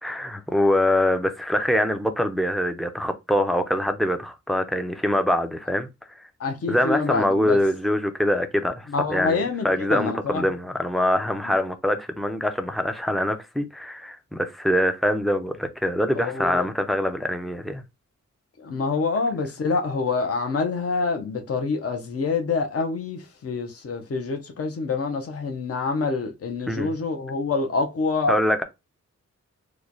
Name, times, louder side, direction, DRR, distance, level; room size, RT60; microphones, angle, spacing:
voice 1, 0.0-5.9 6.7-17.8 26.7-26.9 28.3-28.6, left 1 dB, ahead, 0.4 m, -24 dB
voice 2, 6.4-7.6 8.9-10.4 11.4-11.5 16.1-16.7 18.6-28.4, left 4 dB, 50° left, 0.7 m, -26 dB
3.1 x 2.2 x 3.8 m
wide cardioid pair, 165°, 30 cm